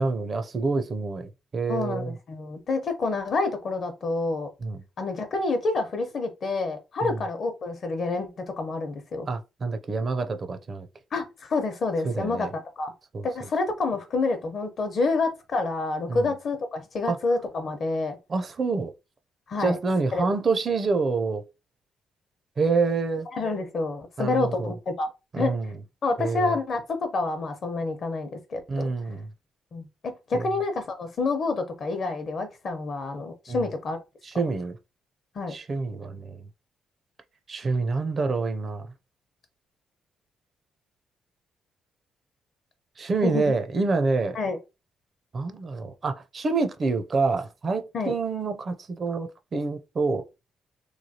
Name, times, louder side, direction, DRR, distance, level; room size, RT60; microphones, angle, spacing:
voice 1, 0.0-2.2 4.6-4.8 7.0-7.2 9.3-10.9 12.0-12.5 13.1-13.3 16.1-16.3 17.0-17.2 18.3-18.9 19.6-21.4 22.6-23.3 24.2-24.7 25.3-25.7 26.2-26.6 28.7-29.3 30.3-30.5 33.5-33.7 34.2-34.8 35.5-36.5 37.5-38.9 43.0-44.4 45.3-50.2, right 4 dB, 40° right, 0.5 m, -27 dB
voice 2, 1.7-4.5 5.0-9.3 11.1-12.9 13.2-18.2 19.5-19.8 20.1-20.3 23.3-25.1 25.4-25.5 26.0-28.9 29.7-34.0 35.3-35.5 43.2-43.5 44.3-44.6 47.9-48.1, left 3 dB, 55° left, 0.8 m, -28 dB
3.1 x 2.2 x 2.8 m
cardioid pair, 90°, 0 cm